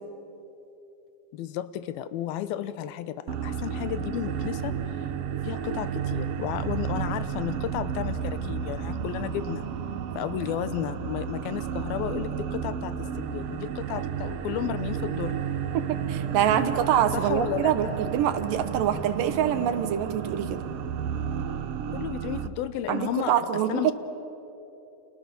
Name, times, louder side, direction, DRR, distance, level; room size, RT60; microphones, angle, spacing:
voice 1, 1.3-5.1 5.4-9.7 10.2-15.4 17.1-18.0 21.9-23.3 23.7-23.9, left 12 dB, 85° left, 14 dB, 2.8 m, -33 dB
sound 1, 3.3-22.5, right 8 dB, 85° right, 1.3 m, -32 dB
voice 2, 15.7-20.6 22.9-23.9, right 9 dB, 70° right, 10 dB, 2.7 m, -25 dB
30.0 x 27.5 x 7.0 m, 3.0 s
omnidirectional pair, 4.2 m